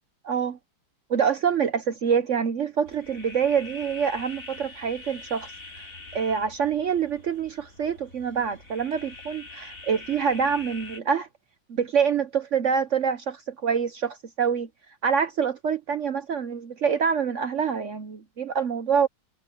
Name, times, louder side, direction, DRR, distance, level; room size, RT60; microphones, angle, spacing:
voice 1, 0.2-0.6 1.1-5.5 6.1-11.3 11.7-14.7 15.0-19.1, right 7 dB, 65° right, 0.7 m, -26 dB
sound 1, 2.8-11.0, left 3 dB, 40° left, 3.9 m, -44 dB
omnidirectional pair, 2.3 m